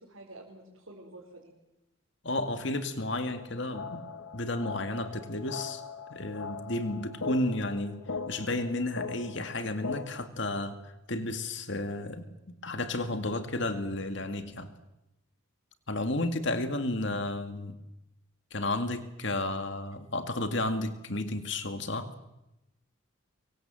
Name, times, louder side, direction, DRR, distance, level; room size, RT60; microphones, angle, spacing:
voice 1, 0.0-1.5 16.6-17.3, right 1 dB, 80° right, 4.8 m, -50 dB
voice 2, 2.2-4.1 4.3-5.8 6.1-12.2 12.6-14.7 15.9-17.8 18.5-22.1, left 2 dB, 60° left, 2.2 m, -32 dB
sound 1, 3.3-10.3, left 4 dB, 90° left, 1.4 m, -40 dB
25.0 x 23.0 x 7.8 m
head